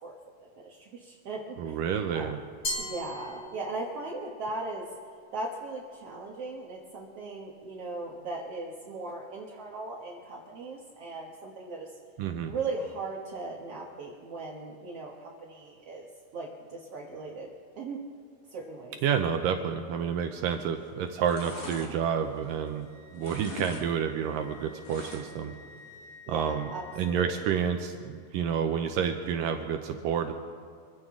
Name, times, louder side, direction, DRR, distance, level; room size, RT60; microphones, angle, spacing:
voice 1, 0.0-1.8 2.1-2.3 2.8-4.9 5.3-12.0 12.5-16.1 16.3-17.5 17.8-18.0 18.5-19.0 26.3-27.4, right 3 dB, 65° right, -2 dB, 1.5 m, -38 dB
voice 2, 1.6-2.4 12.2-12.5 19.0-25.5 26.3-26.7 27.0-30.3, right 7 dB, 80° right, 5 dB, 2.0 m, -29 dB
Glass, 2.6-4.1, left 1 dB, 30° left, 3.0 m, -36 dB
sound 1, 20.4-20.8 21.1-22.8 23.1-23.9 24.1-25.5 25.9-26.0, left 3 dB, 80° left, 0.7 m, -43 dB
Wind instrument woodwind instrument, 21.9-27.8, left 3 dB, 65° left, 2.9 m, -54 dB
25.5 x 15.5 x 3.7 m, 2.3 s
omnidirectional pair, 4.7 m